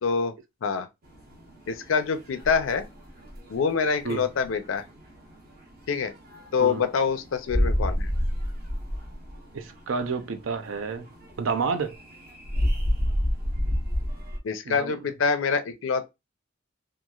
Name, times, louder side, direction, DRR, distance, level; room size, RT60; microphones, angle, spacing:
voice 1, 0.0-0.3 0.6-0.9 1.7-2.9 3.5-4.9 5.9-6.1 6.5-8.1 14.4-16.1, left 5 dB, 75° left, 0.5 m, -25 dB
sound 1, 1.0-14.4, equal, 50° right, 0.9 m, -31 dB
voice 2, 9.5-11.1 11.4-12.0 14.7-14.9, right 4 dB, 80° right, 0.5 m, -29 dB
3.0 x 2.4 x 2.3 m
head